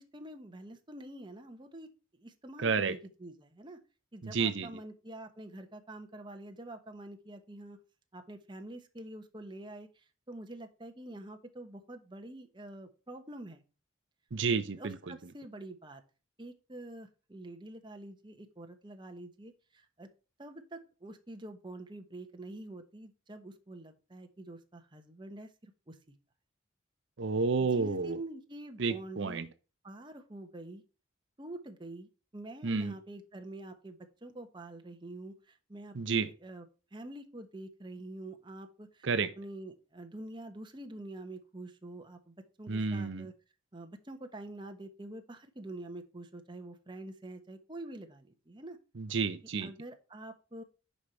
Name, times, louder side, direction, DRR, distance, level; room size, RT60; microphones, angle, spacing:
voice 1, 0.0-1.9 2.2-3.8 4.1-7.8 8.1-13.6 14.8-16.0 16.4-20.1 20.4-26.0 27.6-29.5 29.8-30.8 31.4-36.7 36.9-43.3 43.7-48.8 49.6-50.6, right 1 dB, 25° right, 6 dB, 1.1 m, -46 dB
voice 2, 2.6-2.9 4.2-4.7 14.3-15.1 27.2-28.2 28.8-29.5 32.6-32.9 35.9-36.3 39.0-39.3 42.7-43.2 49.0-49.7, right 4 dB, 65° right, 10 dB, 0.6 m, -30 dB
9.7 x 5.6 x 4.5 m, 0.34 s
head